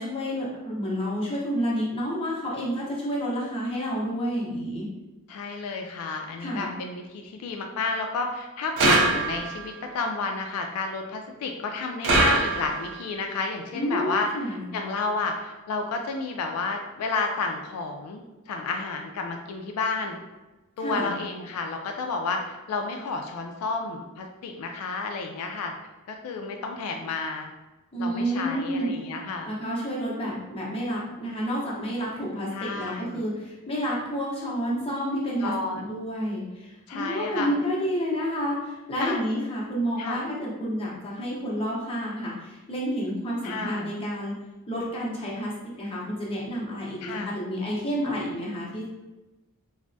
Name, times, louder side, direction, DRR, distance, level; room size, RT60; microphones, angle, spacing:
voice 1, 0.0-4.9 6.4-6.7 13.7-14.7 20.8-21.2 27.9-28.9 29.4-44.4 44.7-48.9, equal, 25° left, -5 dB, 0.7 m, -30 dB
voice 2, 5.3-20.2 20.8-25.7 26.1-27.5 28.0-29.5 32.5-33.2 35.4-35.9 36.9-37.5 39.0-39.2 40.0-40.3 43.4-43.9 47.0-47.3, left 3 dB, 75° left, 3 dB, 0.3 m, -31 dB
sound 1, 8.8-9.7 12.0-13.0, right 2 dB, 55° right, 0.4 m, -22 dB
3.3 x 2.0 x 2.6 m, 1.1 s
head